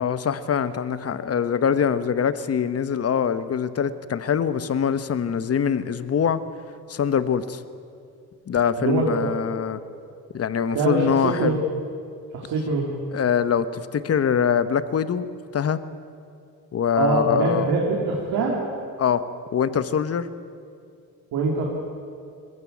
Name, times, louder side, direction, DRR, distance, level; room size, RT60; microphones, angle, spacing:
voice 1, 0.0-6.4 6.9-7.6 8.5-9.8 10.3-11.6 13.1-15.3 15.5-15.8 16.7-17.7 19.0-19.3 19.5-20.3, left 7 dB, 40° left, 13 dB, 1.1 m, -23 dB
voice 2, 8.8-9.4 10.7-11.6 12.3-12.9 17.0-18.6 21.3-21.6, right 3 dB, 85° right, -2 dB, 3.1 m, -23 dB
20.5 x 15.0 x 9.3 m, 2.4 s
cardioid pair, 85°, 36 cm